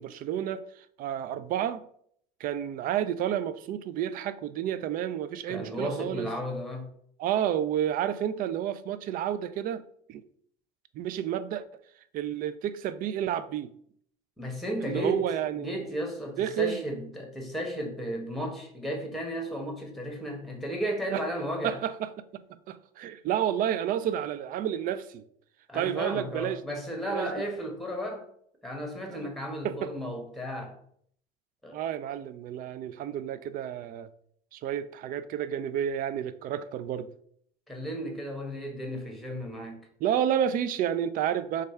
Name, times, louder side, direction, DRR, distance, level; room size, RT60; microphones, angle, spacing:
voice 1, 0.0-1.9 2.4-6.3 7.2-9.8 10.1-10.2 10.9-11.6 12.1-13.7 14.8-15.8 16.4-16.8 21.1-21.2 21.6-25.2 25.7-26.8 27.0-27.3 29.6-29.9 31.7-34.1 34.5-37.1 40.0-41.6, right 10 dB, 50° right, 0.4 m, -30 dB
voice 2, 5.5-6.9 14.4-21.8 25.7-28.3 28.6-30.8 31.6-31.8 37.7-39.8, equal, ahead, 1.2 m, -34 dB
3.2 x 2.4 x 4.3 m
hypercardioid pair, 80°, 18 cm